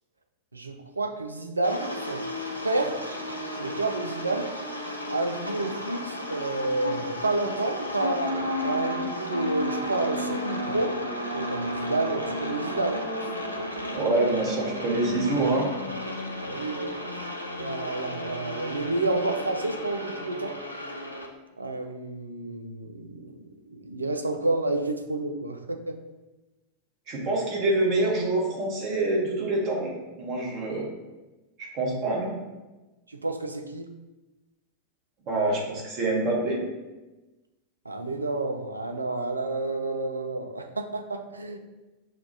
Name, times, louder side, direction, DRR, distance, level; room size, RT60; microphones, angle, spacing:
voice 1, 0.5-2.2 2.6-3.0 3.6-4.5 5.1-8.3 8.6-11.0 11.3-13.0 13.3-13.4 16.4-17.0 17.6-20.6 21.6-23.4 23.7-26.0 33.1-33.9 37.9-41.6, right 2 dB, 80° right, 6 dB, 0.3 m, -30 dB
sound 1, 1.6-21.3, left 1 dB, 85° left, 0.4 m, -33 dB
voice 2, 13.9-15.7 27.1-30.9 31.7-32.4 35.3-36.6, right 2 dB, 40° right, -2 dB, 1.0 m, -26 dB
5.9 x 2.3 x 2.6 m, 1.1 s
figure-of-eight pair, 90°, 0 cm